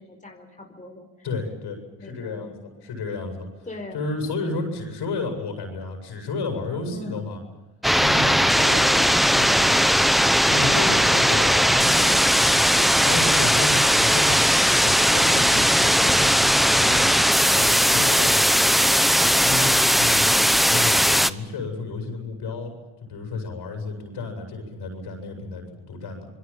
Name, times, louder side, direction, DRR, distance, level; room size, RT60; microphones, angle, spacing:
voice 1, 0.0-1.1 2.0-2.5 3.7-4.1 6.8-7.4, left 2 dB, 15° left, 3 dB, 4.5 m, -40 dB
voice 2, 1.2-3.7 3.9-7.4 8.0-10.0 10.4-14.4 14.7-18.5 19.2-22.7 23.0-26.3, left 3 dB, 65° left, 4 dB, 8.0 m, -32 dB
sound 1, 7.8-21.3, equal, ahead, 0.9 m, -18 dB
27.5 x 21.0 x 7.5 m, 1.1 s
supercardioid pair, 70°, 44 cm